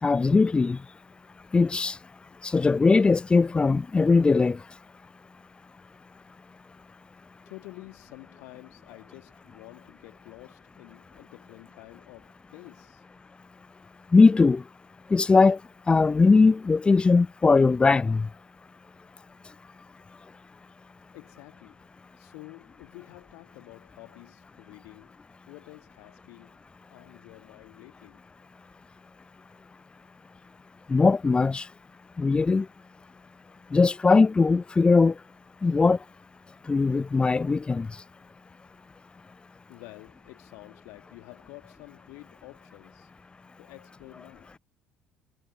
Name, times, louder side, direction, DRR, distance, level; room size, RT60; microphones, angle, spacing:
voice 1, 0.0-0.9 1.5-2.0 2.4-4.7 14.1-14.7 15.1-15.6 15.9-18.3 30.9-31.7 32.2-32.7 33.7-35.2 35.6-36.0 36.6-38.0, left 4 dB, 20° left, 0.7 m, -20 dB
voice 2, 7.5-13.0 21.1-21.9 22.2-25.2 25.5-26.6 26.9-28.2 39.7-43.1 43.6-44.6, left 29 dB, 65° left, 2.0 m, -49 dB
figure-of-eight pair, 55°, 5 cm